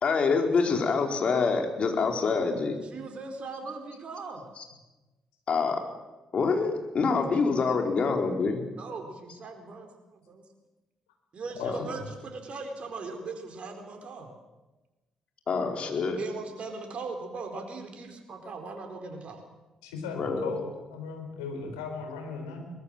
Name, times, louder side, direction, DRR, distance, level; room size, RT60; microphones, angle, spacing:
voice 1, 0.0-2.8 5.5-5.8 6.3-8.6 11.6-11.8 15.5-16.2 20.2-20.5, left 4 dB, 50° left, 3 dB, 4.3 m, -26 dB
voice 2, 2.8-4.4 7.6-7.8 8.8-10.4 11.3-14.3 16.1-19.4, right 4 dB, 50° right, 4 dB, 4.3 m, -39 dB
voice 3, 11.6-11.9 19.8-22.7, left 4 dB, 80° left, 3 dB, 4.4 m, -37 dB
22.5 x 21.0 x 7.6 m, 1.1 s
hypercardioid pair, 45°, 3 cm